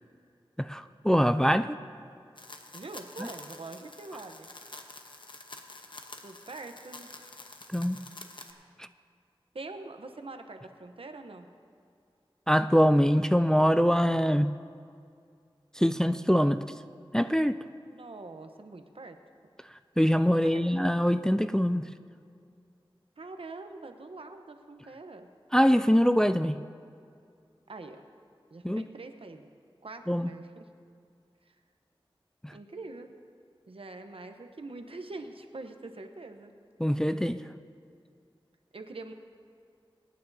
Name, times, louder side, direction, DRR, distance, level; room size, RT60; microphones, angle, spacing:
voice 1, 0.6-1.8 3.2-3.3 7.7-8.0 8.8-8.9 12.5-14.5 15.8-16.6 17.1-17.6 20.0-21.9 25.5-26.6 28.6-28.9 30.1-30.3 32.4-32.5 36.8-37.4, equal, 5° left, 11 dB, 0.3 m, -23 dB
sound 1, 2.4-8.5, left 2 dB, 55° left, 0.9 m, -47 dB
voice 2, 2.7-4.5 6.2-7.1 9.5-11.5 17.8-19.2 20.4-20.6 23.2-25.3 27.7-28.0 28.5-29.5 29.8-30.7 31.5-31.6 32.5-33.1 33.7-36.5 38.7-39.1, right 3 dB, 75° right, 6 dB, 0.8 m, -44 dB
24.5 x 9.4 x 2.7 m, 2.3 s
wide cardioid pair, 60°, 10 cm